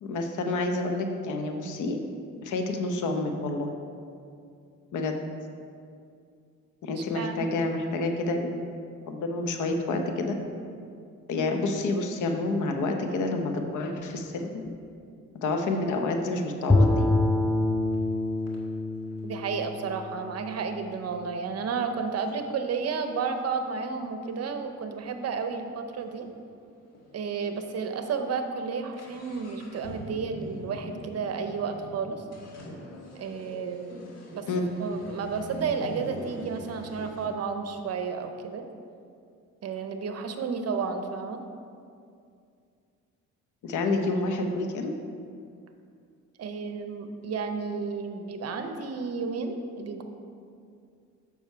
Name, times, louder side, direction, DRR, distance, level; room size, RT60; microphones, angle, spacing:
voice 1, 0.0-2.0 2.4-3.7 4.9-5.2 6.8-8.6 9.0-10.4 11.3-14.6 15.4-17.2 34.5-34.7 43.6-44.9, left 2 dB, 80° left, 4 dB, 0.9 m, -28 dB
voice 2, 7.1-7.4 19.2-26.3 27.1-32.2 33.2-34.5 34.8-38.6 39.6-41.4 46.4-50.0, right 5 dB, 55° right, 7 dB, 0.8 m, -32 dB
Bowed string instrument, 16.7-20.9, left 2 dB, ahead, 0.5 m, -26 dB
sound 1, 17.9-18.0 18.5-21.1 21.7-21.8 22.2-22.3 22.7-26.4 26.7-26.8 26.9-27.1 27.7-27.8 28.1-37.3, left 1 dB, 55° left, 1.5 m, -45 dB
7.2 x 6.0 x 4.5 m, 2.4 s
cardioid pair, 90°, 30 cm